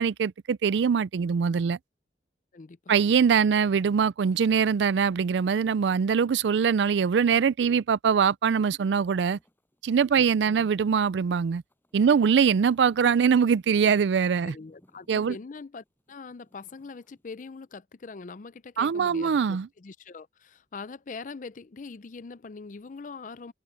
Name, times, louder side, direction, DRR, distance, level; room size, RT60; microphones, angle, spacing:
voice 1, 0.0-1.8 2.9-9.4 9.8-11.6 11.9-14.5 15.1-15.3 18.8-19.7, right 6 dB, 80° right, 0.4 m, -23 dB
voice 2, 2.5-3.0 10.1-10.7 14.4-23.5, left 4 dB, 45° left, 0.5 m, -43 dB
sound 1, 8.7-17.3, equal, 10° left, 7.7 m, -66 dB
head